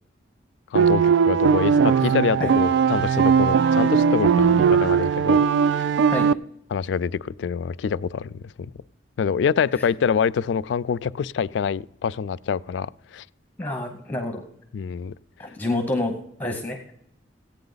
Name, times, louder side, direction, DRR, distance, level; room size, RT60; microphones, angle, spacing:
voice 1, 0.7-5.5 5.7-5.8 6.7-8.7 9.2-13.3 14.7-15.1, left 6 dB, 80° left, 0.3 m, -26 dB
sound 1, 0.7-6.3, right 6 dB, 85° right, 0.3 m, -19 dB
voice 2, 13.6-14.4 15.4-16.1 16.4-16.9, left 2 dB, 10° left, 0.9 m, -27 dB
15.5 x 8.9 x 3.9 m
head